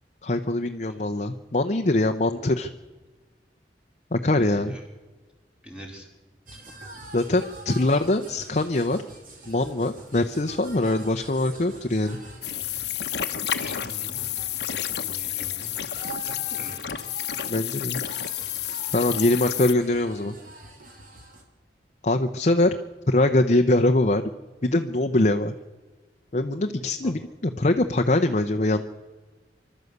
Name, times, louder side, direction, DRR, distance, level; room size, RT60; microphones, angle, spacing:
voice 1, 0.2-2.7 4.1-4.8 7.1-9.0 9.5-12.2 17.5-18.0 18.9-20.3 22.0-22.7 23.1-24.2 24.6-25.5 26.3-27.2 27.6-28.8, left 2 dB, 45° left, 5 dB, 0.8 m, -23 dB
voice 2, 0.8-1.3 2.2-2.3 4.2-4.8 5.6-6.1 6.6-6.7 12.9-13.1 13.4-14.2 14.8-15.8 16.2-17.0 27.0-27.1, equal, 5° right, 0 dB, 4.3 m, -44 dB
sound 1, 6.5-21.4, right 2 dB, 50° right, 3.3 m, -44 dB
sound 2, 12.4-19.7, left 11 dB, 70° left, 1.0 m, -30 dB
26.5 x 12.5 x 8.1 m, 1.3 s
head